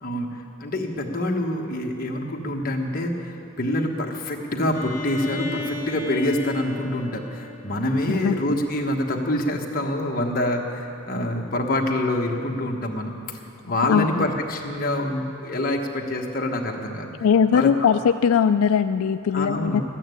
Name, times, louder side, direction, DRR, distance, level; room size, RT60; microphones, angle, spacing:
voice 1, 0.0-13.4 13.6-17.1 17.5-17.7 19.3-19.8, left 1 dB, 40° left, 1 dB, 1.3 m, -26 dB
Bowed string instrument, 4.7-8.5, left 3 dB, 15° left, 1.5 m, -35 dB
voice 2, 8.1-8.6 13.9-14.3 17.2-19.8, left 7 dB, 85° left, 10 dB, 0.3 m, -20 dB
13.5 x 9.1 x 9.2 m, 2.6 s
head